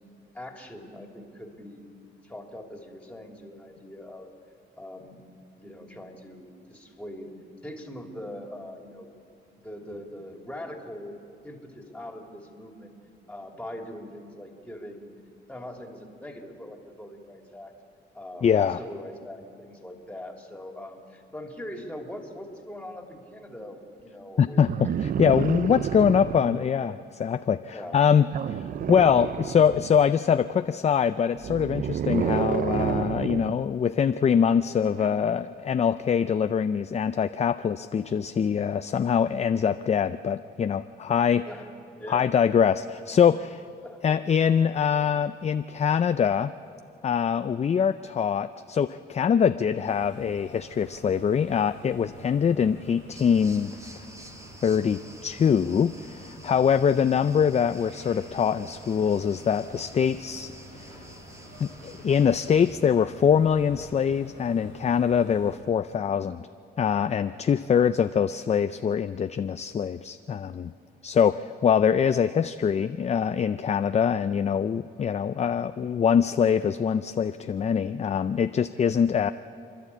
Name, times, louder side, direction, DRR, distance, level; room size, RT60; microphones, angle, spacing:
voice 1, 0.3-1.9 2.2-4.3 4.8-5.2 5.6-7.3 7.6-9.1 9.6-11.1 11.4-13.0 13.3-15.1 15.5-17.7 18.1-24.8 26.5-26.9 27.7-28.0 41.5-42.3 43.8-44.2 67.5-67.9, left 1 dB, 5° left, 2 dB, 3.1 m, -42 dB
voice 2, 18.4-18.8 24.4-41.5 42.1-43.6 44.0-46.5 47.0-54.0 54.6-60.8 61.6-66.5 66.8-70.7 71.0-79.3, left 7 dB, 35° left, 11 dB, 0.5 m, -24 dB
sound 1, 24.7-26.6 28.3-30.1 31.4-33.6 35.0-35.1, right 9 dB, 45° right, 0.5 m, -30 dB
sound 2, 49.8-65.6, equal, 80° right, 5.3 m, -48 dB
sound 3, 53.1-62.7, right 1 dB, 15° right, 1.9 m, -50 dB
29.5 x 11.5 x 8.5 m, 2.4 s
cardioid pair, 90°, 20 cm